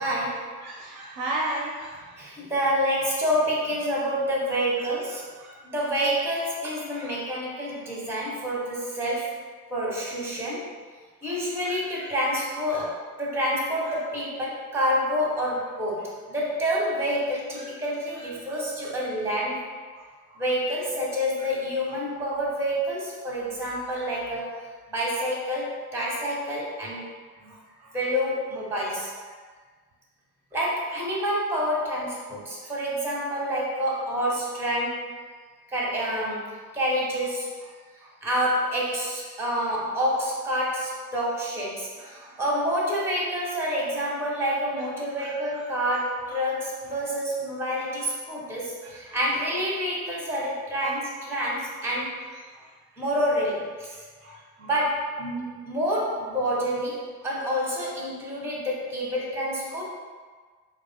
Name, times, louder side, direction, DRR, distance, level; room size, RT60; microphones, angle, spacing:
voice 1, 0.0-0.5 2.2-5.3 5.6-9.3 9.7-10.7 11.2-19.7 20.4-24.6 24.9-27.1 27.4-27.5 27.9-29.1 30.5-35.1 35.7-37.5 38.2-52.1 53.0-53.9 54.6-59.8, equal, 5° right, -4 dB, 0.7 m, -28 dB
voice 2, 0.6-2.2 4.8-4.9 5.4-5.9 6.9-7.1 11.2-11.3 11.7-12.1 12.7-12.8 17.6-17.7 18.1-19.0 19.9-20.4 23.6-23.8 27.4-28.0 32.6-32.7 38.0-38.1 42.0-42.4 44.0-44.1 45.2-45.7 46.3-46.4 48.4-48.5 48.8-49.2 50.8-50.9 52.4-52.7 53.9-54.7, right 1 dB, 45° right, -2 dB, 0.4 m, -38 dB
3.0 x 2.5 x 2.3 m, 1.5 s
figure-of-eight pair, 70°, 46 cm